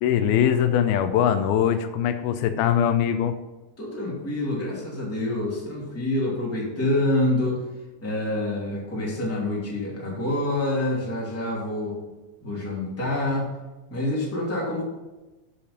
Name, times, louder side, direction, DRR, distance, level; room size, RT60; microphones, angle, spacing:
voice 1, 0.0-3.4, left 9 dB, 85° left, 9 dB, 2.4 m, -22 dB
voice 2, 3.8-7.6 8.0-12.0 12.4-13.5 13.9-14.8, left 1 dB, 5° left, -4 dB, 1.7 m, -27 dB
8.4 x 6.7 x 5.7 m, 1.1 s
omnidirectional pair, 4.4 m